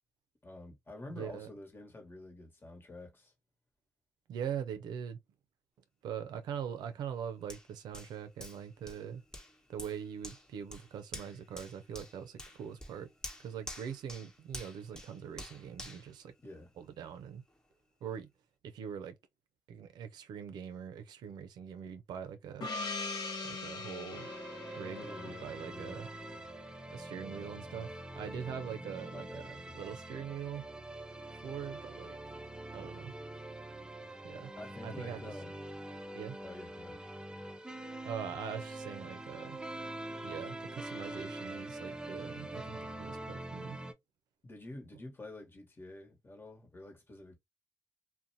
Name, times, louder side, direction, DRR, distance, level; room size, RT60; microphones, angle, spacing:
voice 1, 0.4-3.3 16.4-16.7 24.9-26.0 29.1-29.9 34.6-35.6 36.4-37.1 44.4-47.4, left 2 dB, 30° left, 1.2 m, -49 dB
voice 2, 1.1-1.5 4.3-5.2 6.0-9.2 9.7-13.1 13.4-16.3 16.8-17.4 18.0-18.3 18.6-19.1 19.7-22.7 23.4-24.3 24.8-26.1 26.9-29.4 29.7-30.6 31.3-32.2 32.7-33.1 34.2-34.5 34.8-35.3 36.2-36.4 38.0-39.6 40.2-43.8, right 8 dB, 90° right, 0.4 m, -42 dB
Hands, 7.5-17.0 17.5-17.6, left 1 dB, 10° left, 0.9 m, -49 dB
Gong, 22.6-26.9, left 3 dB, 70° left, 0.8 m, -41 dB
sound 1, 24.1-43.9, right 1 dB, 10° right, 0.5 m, -44 dB
2.5 x 2.1 x 2.6 m
cardioid pair, 65°, 7 cm